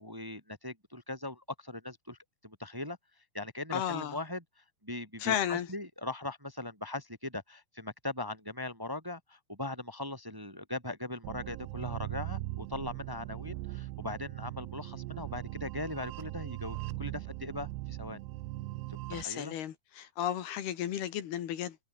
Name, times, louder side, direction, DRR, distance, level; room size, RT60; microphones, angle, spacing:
voice 1, 0.0-3.0 3.3-4.4 4.8-18.2 18.9-19.5, left 2 dB, 5° right, 3.1 m, -40 dB
voice 2, 3.7-4.2 5.2-5.7 19.1-21.8, left 10 dB, 70° left, 3.7 m, -33 dB
sound 1, 11.2-19.2, right 18 dB, 85° right, 3.0 m, -40 dB
omnidirectional pair, 4.8 m